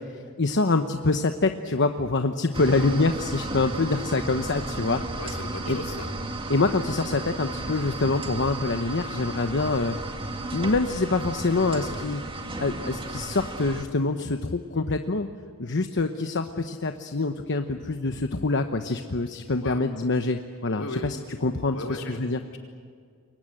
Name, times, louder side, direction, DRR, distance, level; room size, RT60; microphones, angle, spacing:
voice 1, 0.4-5.0 5.7-5.8 6.5-9.9 10.5-12.2 12.6-15.3 15.6-21.2 21.4-21.8 22.1-22.4, left 3 dB, 60° left, 6 dB, 1.0 m, -25 dB
sound 1, 2.5-13.8, right 2 dB, 25° right, 2.0 m, -34 dB
voice 2, 5.2-6.1 19.6-19.8 20.8-21.1 21.7-22.2 22.5-22.6, left 2 dB, 75° left, 0 dB, 4.7 m, -36 dB
29.0 x 23.5 x 7.7 m, 2.1 s
head